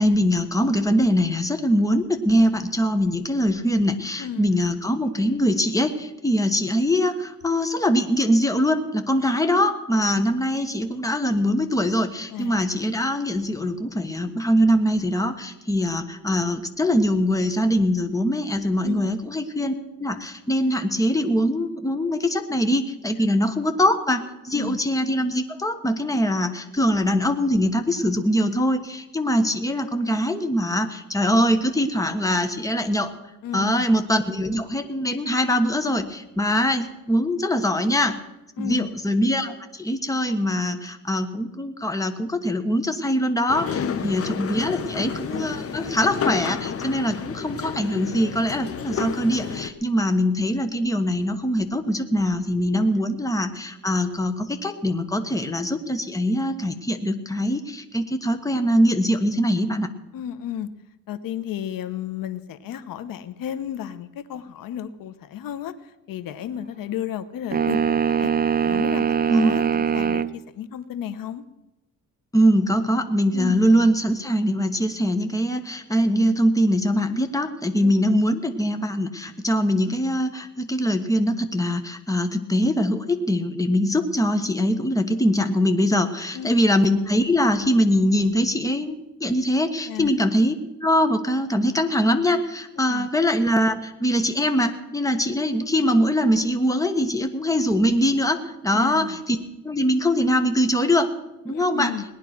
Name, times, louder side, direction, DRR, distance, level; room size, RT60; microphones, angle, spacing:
voice 1, 0.0-19.7 20.0-33.1 33.5-38.2 38.6-59.9 69.3-69.6 72.3-88.9 89.2-90.5 90.8-99.4 99.6-101.1 101.4-101.9, equal, 10° left, 7 dB, 1.4 m, -22 dB
voice 2, 33.4-33.7 38.6-38.9 43.8-44.1 52.7-52.8 60.1-60.7 61.1-68.3 68.6-71.4 73.3-73.6 77.8-78.2 86.3-86.6 89.9-90.1 92.8-93.1 98.7-99.2 101.5-102.0, left 10 dB, 85° left, 13 dB, 1.0 m, -33 dB
sound 1, 43.5-49.7, left 7 dB, 45° left, 1.0 m, -31 dB
sound 2, 67.5-70.3, right 7 dB, 30° right, 0.6 m, -22 dB
19.0 x 10.5 x 6.0 m, 0.99 s
cardioid pair, 115°, 33 cm